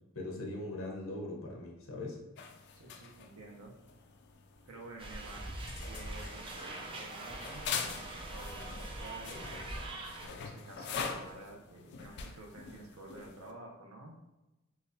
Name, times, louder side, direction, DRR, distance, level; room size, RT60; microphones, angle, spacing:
voice 1, 0.1-2.2, left 2 dB, 70° left, -1 dB, 0.8 m, -40 dB
sound 1, 2.4-13.5, left 6 dB, 50° left, 0.3 m, -44 dB
voice 2, 2.8-3.8 4.7-5.6 5.9-9.6 10.4-14.2, right 2 dB, 75° right, 1 dB, 0.7 m, -50 dB
sound 2, 5.0-10.3, right 2 dB, 25° right, 0.4 m, -43 dB
3.9 x 2.3 x 2.6 m, 1.0 s
head